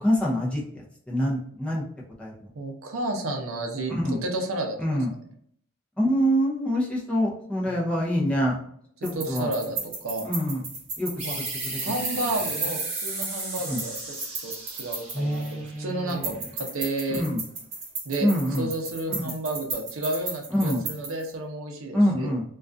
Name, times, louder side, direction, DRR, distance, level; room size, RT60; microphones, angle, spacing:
voice 1, 0.0-1.8 2.2-2.3 3.9-4.2 4.8-5.1 6.0-8.6 9.0-9.5 10.2-10.6 11.0-11.4 12.7-12.8 13.7-13.8 15.1-16.4 17.1-17.4 18.2-18.7 19.1-19.2 20.5-20.8 21.9-22.4, equal, 5° left, -4 dB, 0.4 m, -25 dB
voice 2, 2.5-3.9 4.2-4.8 7.7-7.9 9.2-10.3 11.2-11.4 11.8-13.9 14.4-17.3 18.0-18.3 18.6-22.3, right 2 dB, 75° right, 3 dB, 0.5 m, -31 dB
sound 1, 9.0-15.7 16.1-21.3, right 3 dB, 60° right, 0.8 m, -35 dB
sound 2, 11.2-16.5, right 2 dB, 30° right, 0.7 m, -35 dB
2.3 x 2.3 x 2.5 m, 0.64 s
head